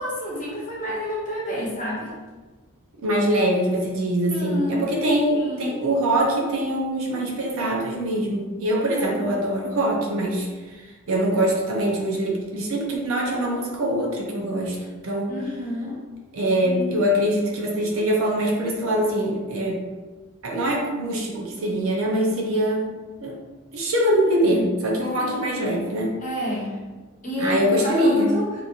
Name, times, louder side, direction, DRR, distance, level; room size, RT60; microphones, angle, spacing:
voice 1, 0.0-2.1 4.3-4.9 5.3-5.7 8.9-9.3 15.3-15.9 16.6-17.0 24.2-24.6 25.2-25.4 26.2-26.8 27.2-28.4, left 1 dB, 35° left, -6 dB, 0.9 m, -29 dB
voice 2, 3.0-14.8 15.0-15.3 16.3-19.8 20.4-23.4 23.7-26.1 27.4-28.4, right 1 dB, 70° right, -1 dB, 0.6 m, -23 dB
2.9 x 2.5 x 2.4 m, 1.3 s
head